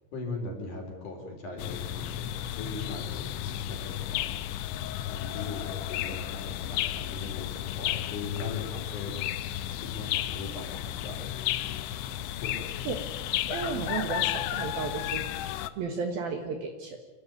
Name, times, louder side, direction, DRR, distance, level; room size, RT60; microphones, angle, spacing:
voice 1, 0.1-4.3 5.1-9.2 9.9-11.3 12.4-12.7, left 3 dB, 45° left, 2 dB, 4.9 m, -40 dB
sound 1, 1.6-15.7, left 13 dB, 80° left, 3.2 m, -33 dB
voice 2, 13.5-15.3 15.8-17.0, right 5 dB, 65° right, 5 dB, 2.8 m, -33 dB
29.0 x 12.0 x 9.5 m, 1.2 s
omnidirectional pair, 5.5 m